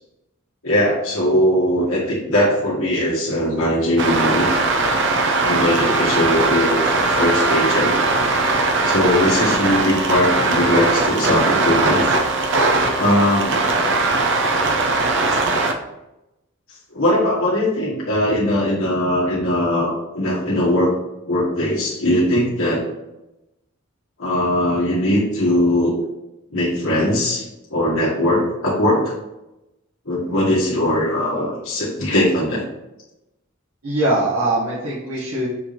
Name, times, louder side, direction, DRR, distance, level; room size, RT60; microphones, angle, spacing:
voice 1, 0.6-4.5 5.5-6.8 7.2-7.9 8.8-12.1 12.9-13.7 16.9-20.9 21.3-22.8 24.2-26.0 26.5-27.4 27.7-29.1 30.1-32.6, left 1 dB, 75° left, -6 dB, 1.9 m, -20 dB
sound 1, 4.0-15.7, right 3 dB, 60° right, 0.8 m, -19 dB
voice 2, 33.8-35.5, right 1 dB, 80° right, -7 dB, 1.8 m, -22 dB
7.0 x 3.5 x 4.2 m, 0.94 s
head